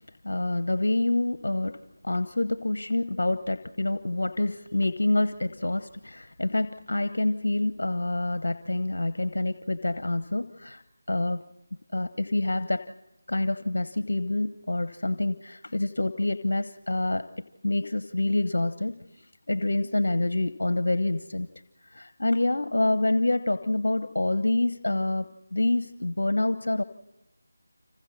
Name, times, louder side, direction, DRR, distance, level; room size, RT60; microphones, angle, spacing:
voice 1, 0.2-11.4 11.9-12.9 13.3-17.3 17.6-21.5 21.8-26.8, left 2 dB, 65° left, 12 dB, 1.1 m, -27 dB
29.0 x 26.5 x 4.2 m, 0.94 s
figure-of-eight pair, 160°, 0 cm